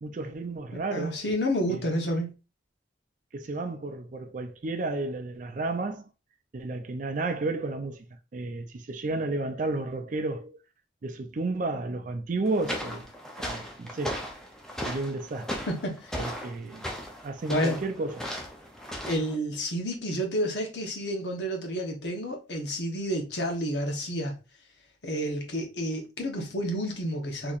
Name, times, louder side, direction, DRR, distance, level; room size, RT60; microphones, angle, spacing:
voice 1, 0.0-1.3 1.7-1.9 3.3-6.0 6.5-8.1 8.3-10.6 11.0-13.1 13.5-14.2 14.8-15.6 16.2-16.9 17.2-18.3, right 2 dB, 45° right, 0.4 m, -32 dB
voice 2, 0.9-2.3 15.7-16.2 17.5-17.8 19.1-24.3 25.0-27.6, equal, 65° left, 1.0 m, -30 dB
sound 1, 12.5-19.4, equal, 5° left, 0.6 m, -37 dB
4.1 x 2.9 x 2.5 m
head